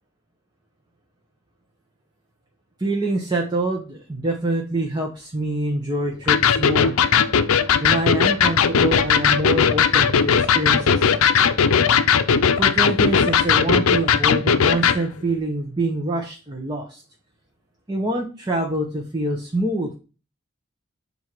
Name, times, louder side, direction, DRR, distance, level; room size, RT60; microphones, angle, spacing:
voice 1, 2.8-7.0 7.8-11.1 12.6-17.0 17.9-20.0, right 1 dB, 20° right, 0 dB, 1.0 m, -25 dB
Electric guitar, 6.3-15.0, left 7 dB, 75° left, 0.5 m, -18 dB
7.6 x 2.8 x 6.0 m, 0.34 s
head